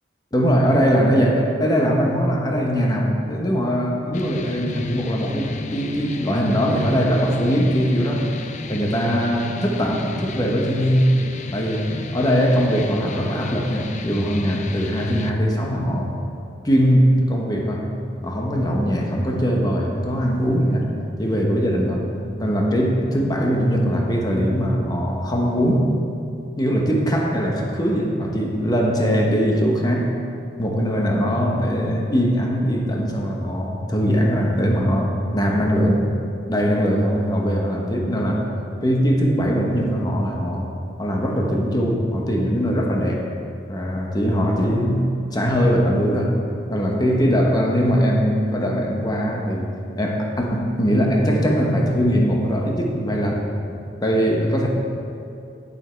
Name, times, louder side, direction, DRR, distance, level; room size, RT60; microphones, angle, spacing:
voice 1, 0.3-8.3 8.7-11.2 11.5-16.2 16.6-17.9 18.2-20.9 21.2-22.1 22.4-25.9 26.6-30.2 30.6-36.2 36.5-38.5 38.8-40.7 41.0-43.3 43.7-46.4 46.7-49.7 50.0-53.5 54.0-54.7, equal, 20° left, 0 dB, 1.1 m, -21 dB
sound 1, 4.1-15.3, left 3 dB, 40° left, 0.5 m, -34 dB
9.1 x 7.5 x 4.5 m, 2.6 s
head